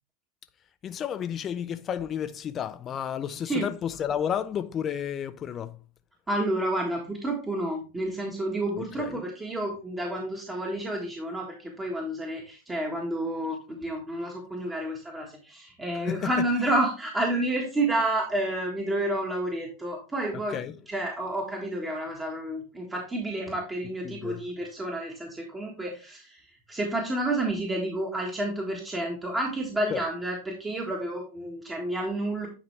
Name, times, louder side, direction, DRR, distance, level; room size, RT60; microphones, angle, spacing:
voice 1, 0.8-5.7 9.0-9.2 16.0-16.3 20.5-20.7 24.0-24.4 29.9-30.0, left 9 dB, 30° left, 0.5 m, -31 dB
voice 2, 6.3-20.6 20.9-26.4 26.7-32.5, right 1 dB, 15° right, 1.5 m, -30 dB
9.6 x 4.1 x 3.2 m
hypercardioid pair, 105°, 0 cm